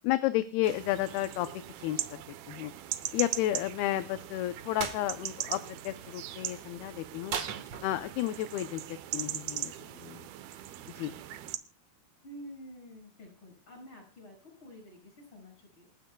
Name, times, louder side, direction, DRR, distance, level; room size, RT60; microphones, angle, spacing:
voice 1, 0.0-1.5 1.8-2.2 2.5-2.7 3.1-7.3 7.8-8.8 9.1-10.3 11.0-11.1, left 14 dB, 80° left, 10 dB, 2.5 m, -32 dB
sound 1, 0.6-11.6, right 13 dB, 75° right, 2.6 m, -40 dB
sound 2, 4.8-5.0 7.3-8.2, right 7 dB, 55° right, 1.9 m, -36 dB
voice 2, 12.2-15.9, equal, 30° left, 2 dB, 7.1 m, -49 dB
27.5 x 10.5 x 2.3 m, 0.35 s
omnidirectional pair, 4.9 m